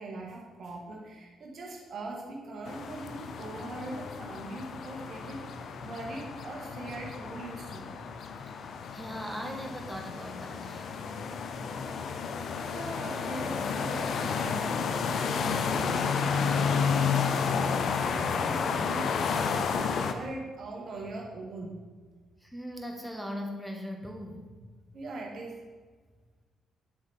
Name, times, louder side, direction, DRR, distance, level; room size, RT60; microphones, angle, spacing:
voice 1, 0.0-7.9 12.6-21.7 24.9-25.6, right 2 dB, 50° right, -1 dB, 1.7 m, -41 dB
sound 1, 2.7-20.1, left 6 dB, 60° left, 0.5 m, -31 dB
voice 2, 8.9-10.9 22.4-24.5, equal, ahead, 1 dB, 1.5 m, -39 dB
7.1 x 6.0 x 3.5 m, 1.4 s
hypercardioid pair, 45°, 0 cm